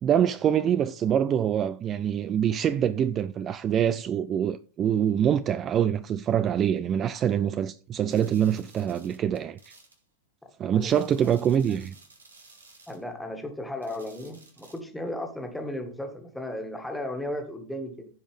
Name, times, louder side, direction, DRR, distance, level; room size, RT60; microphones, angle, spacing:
voice 1, 0.0-9.7 10.6-11.9, right 9 dB, 30° right, 0.3 m, -25 dB
sound 1, 8.1-10.0 10.8-13.0 13.8-14.8, right 3 dB, 75° right, 2.2 m, -54 dB
voice 2, 11.2-11.7 12.9-18.1, left 1 dB, 5° left, 1.8 m, -35 dB
15.0 x 5.1 x 3.5 m
figure-of-eight pair, 90°, 0 cm